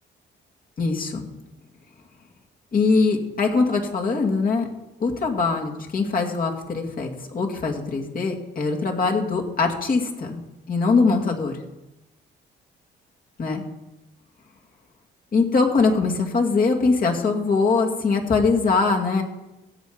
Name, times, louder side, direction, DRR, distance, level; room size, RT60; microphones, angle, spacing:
voice 1, 0.8-1.3 2.7-4.7 5.0-10.4 10.7-11.5 13.4-13.6 15.3-19.2, left 4 dB, 45° left, 1 dB, 2.4 m, -22 dB
16.5 x 7.6 x 5.2 m, 0.97 s
cardioid pair, 90°, 20 cm